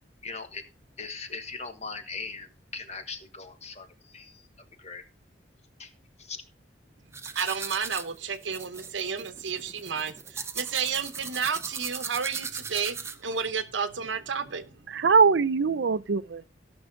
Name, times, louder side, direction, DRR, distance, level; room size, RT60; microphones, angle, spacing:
voice 1, 0.2-0.6 1.0-4.5 4.8-5.0 5.8-5.9 6.2-6.4, left 4 dB, 35° left, 1.4 m, -39 dB
sound 1, 7.1-13.4, right 5 dB, 15° right, 0.6 m, -38 dB
voice 2, 7.4-14.7, right 6 dB, 85° right, 0.9 m, -31 dB
voice 3, 14.9-16.5, right 5 dB, 65° right, 0.5 m, -22 dB
17.0 x 6.2 x 3.8 m
head